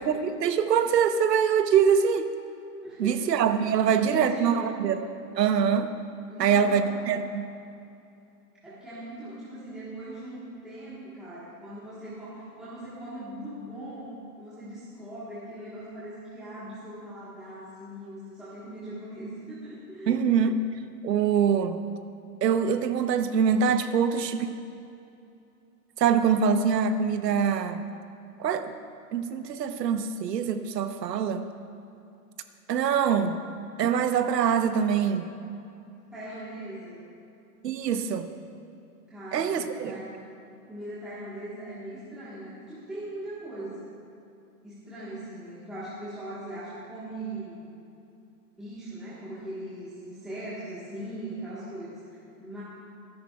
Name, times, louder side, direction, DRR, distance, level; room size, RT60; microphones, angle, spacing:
voice 1, 0.0-2.3 3.0-5.0 5.4-5.9 6.4-7.5 20.1-20.6 21.0-21.8 22.4-24.5 26.0-27.8 28.4-28.7 29.1-31.5 32.7-33.4 33.8-35.3 37.6-38.3 39.3-40.0, right 7 dB, 75° right, 9 dB, 1.0 m, -24 dB
voice 2, 2.8-3.3 3.7-4.7 6.3-7.0 8.6-14.1 14.4-20.2 36.1-37.1 39.1-40.1 40.7-43.9 44.6-47.6 48.6-52.6, right 1 dB, ahead, -13 dB, 1.4 m, -40 dB
24.5 x 10.5 x 2.4 m, 2.7 s
hypercardioid pair, 170°, 49 cm